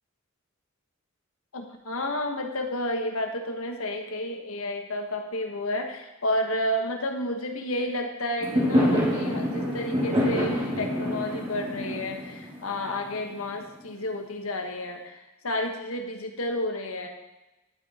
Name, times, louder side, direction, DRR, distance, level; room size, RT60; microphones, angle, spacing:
voice 1, 1.5-17.1, left 1 dB, 90° left, 4 dB, 1.5 m, -31 dB
Fireworks, 8.4-13.6, equal, 25° right, 2.4 m, -26 dB
11.5 x 8.5 x 4.4 m, 0.99 s
head